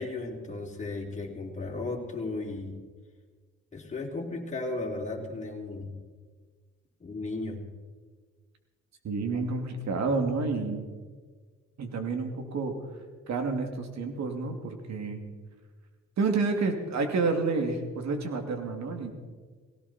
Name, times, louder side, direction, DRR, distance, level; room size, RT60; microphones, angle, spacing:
voice 1, 0.0-2.8 3.7-5.9 7.0-7.6, left 2 dB, 25° left, -1 dB, 3.7 m, -35 dB
voice 2, 9.0-10.8 11.8-12.8 13.3-15.2 16.2-19.1, right 4 dB, 65° right, 5 dB, 2.7 m, -29 dB
18.0 x 17.5 x 4.4 m, 1.5 s
cardioid pair, 90°, 30 cm